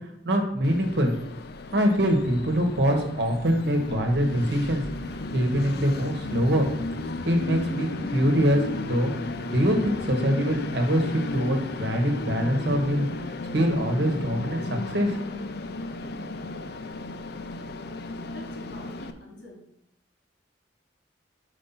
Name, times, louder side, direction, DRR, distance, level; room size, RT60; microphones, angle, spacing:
voice 1, 0.2-1.1 1.7-4.8 5.3-6.7 7.2-9.1 9.4-13.1 13.5-15.2, equal, 65° right, 3 dB, 1.3 m, -24 dB
Train, 0.6-19.1, left 2 dB, 60° left, 0.5 m, -34 dB
voice 2, 18.2-19.6, left 1 dB, 85° left, -2 dB, 2.9 m, -45 dB
5.3 x 5.0 x 5.8 m, 0.77 s
head